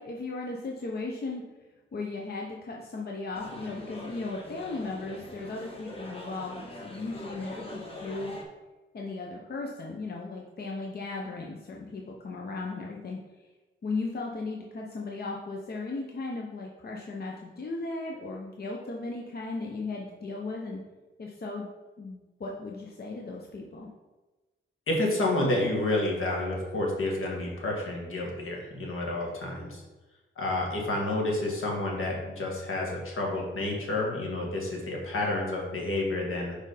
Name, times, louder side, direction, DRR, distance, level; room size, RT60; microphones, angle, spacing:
voice 1, 0.0-1.4 1.9-8.3 8.9-13.2 13.8-20.8 21.2-21.7 22.0-23.9, left 3 dB, 50° left, -1 dB, 0.8 m, -36 dB
sound 1, 3.3-8.4, left 1 dB, 25° left, 1.2 m, -43 dB
voice 2, 24.9-29.8 30.4-36.6, left 2 dB, 75° left, -1 dB, 1.7 m, -29 dB
4.9 x 4.5 x 5.0 m, 1.2 s
cardioid pair, 95°, 21 cm